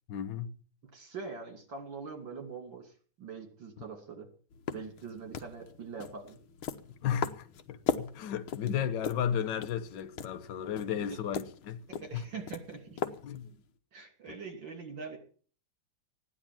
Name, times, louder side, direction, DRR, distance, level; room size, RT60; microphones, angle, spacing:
voice 1, 0.1-0.6 7.0-11.8 12.1-12.2 13.2-13.5, left 9 dB, 60° left, 1.5 m, -34 dB
voice 2, 0.9-4.3 4.7-6.4 10.7-11.2 11.9-13.0 13.9-15.2, right 5 dB, 60° right, 3.5 m, -43 dB
sound 1, 4.5-13.7, left 7 dB, 75° left, 1.8 m, -40 dB
15.5 x 9.9 x 7.3 m
omnidirectional pair, 2.3 m